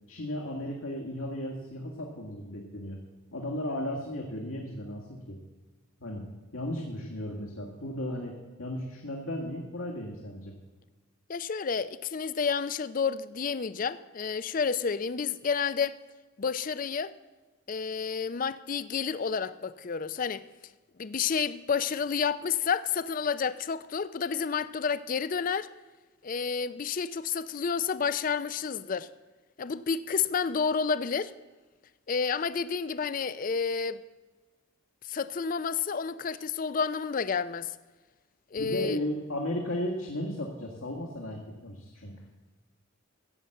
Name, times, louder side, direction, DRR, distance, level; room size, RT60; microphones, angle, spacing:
voice 1, 0.1-3.0 3.3-5.4 6.0-10.5 38.6-42.2, left 1 dB, 75° left, 1.9 m, -35 dB
voice 2, 11.3-16.0 16.4-17.1 17.7-20.4 21.0-25.7 26.2-29.1 29.6-31.3 32.1-34.0 35.1-37.7 38.5-39.0, left 6 dB, 40° left, 0.4 m, -30 dB
14.5 x 8.4 x 7.7 m
head